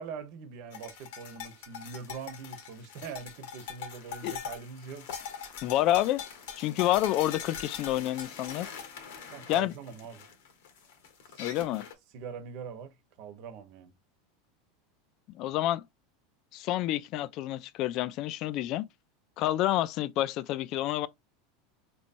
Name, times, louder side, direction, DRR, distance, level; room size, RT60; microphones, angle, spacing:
voice 1, 0.0-5.1 9.3-10.3 11.3-11.5 12.1-13.9, right 6 dB, 60° right, 1.0 m, -43 dB
sound 1, 0.7-11.9, left 7 dB, 75° left, 1.2 m, -43 dB
voice 2, 5.6-6.2 6.6-8.7 9.5-9.7 11.4-11.8 15.3-15.8 16.5-18.9 19.4-21.1, left 14 dB, 50° left, 0.4 m, -28 dB
4.2 x 3.0 x 2.5 m
supercardioid pair, 115°, 0 cm